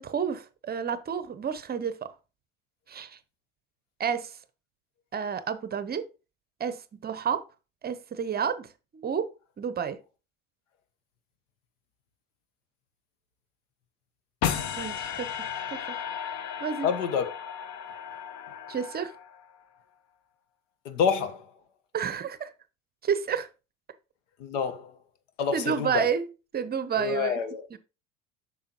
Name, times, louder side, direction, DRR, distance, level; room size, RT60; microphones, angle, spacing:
voice 1, 0.0-2.1 2.9-3.2 4.0-4.4 5.1-6.1 6.6-7.4 7.8-10.0 14.8-16.0 16.6-16.9 18.7-19.2 21.9-22.5 23.0-23.5 25.5-27.4 27.7-27.8, right 7 dB, 25° right, 0.7 m, -30 dB
sound 1, 14.4-19.6, left 8 dB, 45° left, 0.9 m, -34 dB
voice 2, 16.8-17.3 20.8-21.5 24.4-24.9 25.4-26.1 27.0-27.7, left 6 dB, 70° left, 1.1 m, -28 dB
8.7 x 6.2 x 2.9 m
hypercardioid pair, 80°, 39 cm